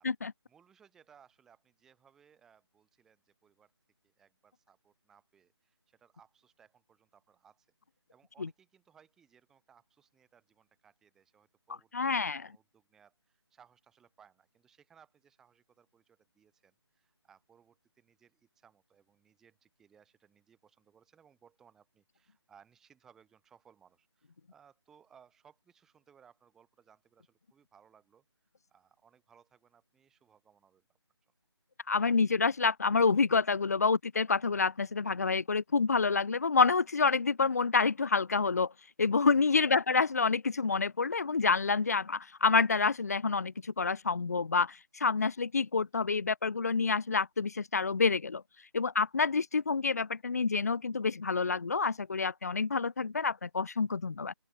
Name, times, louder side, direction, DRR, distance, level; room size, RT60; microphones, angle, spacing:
voice 1, 0.5-3.7 4.0-7.7 8.1-30.8 39.6-40.0, right 7 dB, 5° right, 2.5 m, -64 dB
voice 2, 11.9-12.5 31.9-38.7 39.0-48.4 48.7-54.3, left 4 dB, 35° left, 1.5 m, -28 dB
open air
figure-of-eight pair, 175°, 14 cm